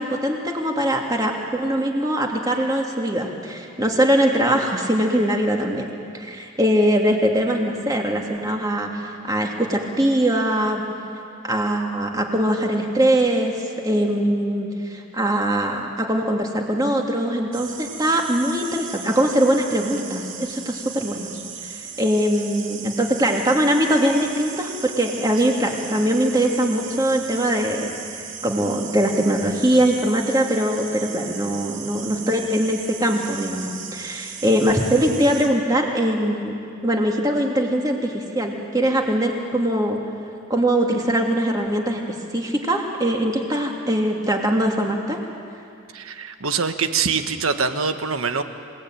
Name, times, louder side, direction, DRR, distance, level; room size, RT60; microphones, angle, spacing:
voice 1, 0.0-5.8 6.1-10.8 11.4-21.3 21.6-27.9 28.4-36.5 36.8-40.0 40.5-42.0 42.3-45.2, right 1 dB, 15° right, 1 dB, 2.4 m, -22 dB
sound 1, 17.5-35.5, right 7 dB, 65° right, 2.7 m, -37 dB
voice 2, 45.9-48.4, right 5 dB, 85° right, 8 dB, 1.4 m, -24 dB
28.0 x 18.0 x 9.1 m, 2.5 s
head